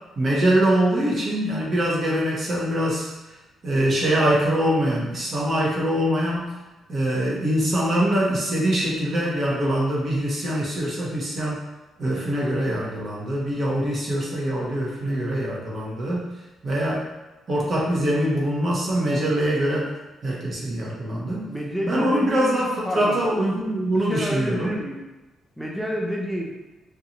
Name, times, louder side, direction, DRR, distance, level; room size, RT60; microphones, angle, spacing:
voice 1, 0.2-3.1 3.6-6.5 6.9-11.6 12.0-16.3 16.6-17.0 17.5-19.9 20.2-21.5 21.8-24.8, right 1 dB, 35° right, -4 dB, 0.7 m, -23 dB
voice 2, 21.5-23.2 23.9-25.0 25.6-26.5, equal, 5° right, -1 dB, 0.4 m, -29 dB
2.6 x 2.2 x 2.8 m, 1.1 s
cardioid pair, 140°, 0 cm